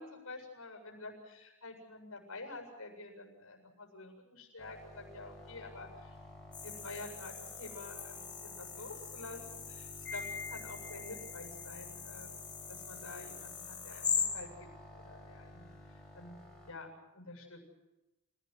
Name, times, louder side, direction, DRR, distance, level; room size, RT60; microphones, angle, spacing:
voice 1, 0.0-6.2 6.6-12.4 12.7-16.4 16.7-17.6, left 2 dB, 80° left, 2 dB, 7.7 m, -49 dB
sound 1, 4.6-16.7, left 1 dB, 5° left, 6.9 m, -53 dB
sound 2, 6.5-14.2, left 6 dB, 20° left, 6.7 m, -41 dB
Wind chime, 10.1-11.4, left 4 dB, 45° left, 6.9 m, -44 dB
28.5 x 18.0 x 8.1 m, 0.97 s
head